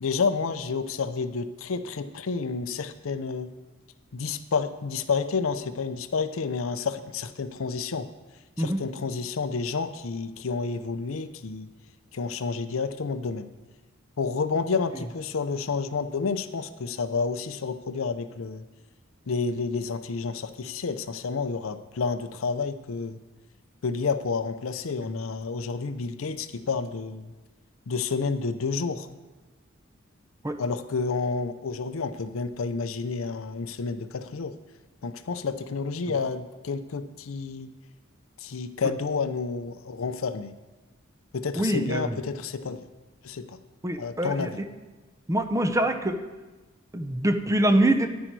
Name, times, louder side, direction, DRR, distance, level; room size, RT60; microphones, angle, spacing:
voice 1, 0.0-3.5 4.1-8.1 8.6-11.7 12.1-13.5 14.2-18.6 19.3-23.2 23.8-27.3 27.9-29.1 30.6-34.5 35.0-37.7 38.4-40.6 41.3-42.9 43.2-43.6 44.0-44.6, left 4 dB, 75° left, 10 dB, 0.6 m, -30 dB
voice 2, 41.6-42.2 43.8-44.6 45.3-46.2 46.9-48.1, right 1 dB, 15° right, 8 dB, 0.6 m, -24 dB
10.0 x 9.4 x 4.6 m, 1.2 s
head